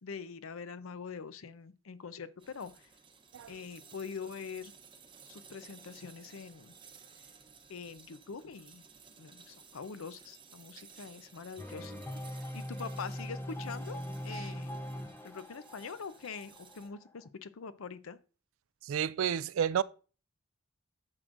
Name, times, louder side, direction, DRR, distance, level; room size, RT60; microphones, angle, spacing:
voice 1, 0.0-2.9 3.5-4.7 5.3-6.7 7.7-8.8 9.2-11.9 12.5-14.7 15.2-18.2, left 5 dB, 80° left, 0.6 m, -44 dB
sound 1, 2.4-16.9, right 6 dB, 25° right, 0.8 m, -57 dB
sound 2, 11.6-17.3, equal, 10° left, 0.5 m, -41 dB
voice 2, 18.8-19.8, right 8 dB, 70° right, 0.3 m, -30 dB
9.7 x 6.1 x 2.5 m
head